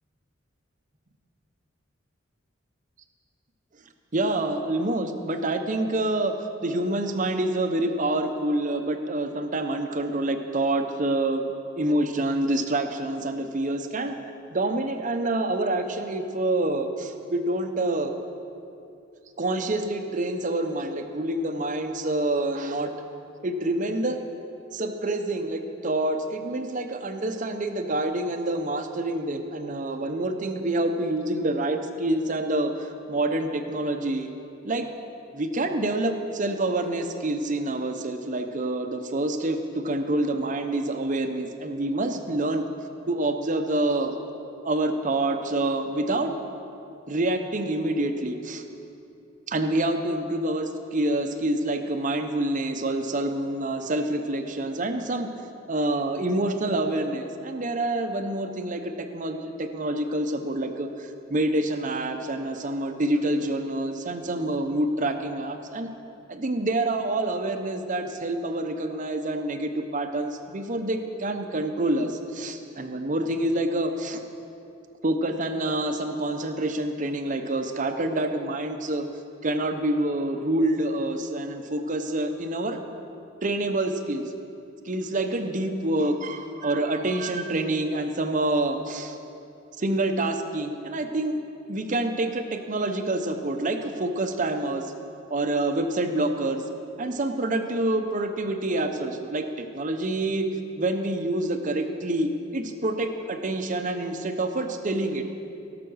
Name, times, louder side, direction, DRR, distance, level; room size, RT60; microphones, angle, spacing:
voice 1, 4.1-6.3 6.6-14.2 14.5-18.1 19.4-22.9 23.4-24.2 24.7-34.3 34.6-34.9 35.3-42.7 43.1-44.1 44.6-46.3 47.1-48.6 49.5-55.3 55.7-65.9 66.3-74.2 75.0-79.1 79.4-82.8 83.4-84.2 84.8-89.2 89.8-91.4 91.7-94.9 95.3-96.6 97.0-100.5 100.8-105.4, right 1 dB, 40° right, 6 dB, 0.8 m, -27 dB
17.0 x 6.0 x 6.3 m, 2.6 s
head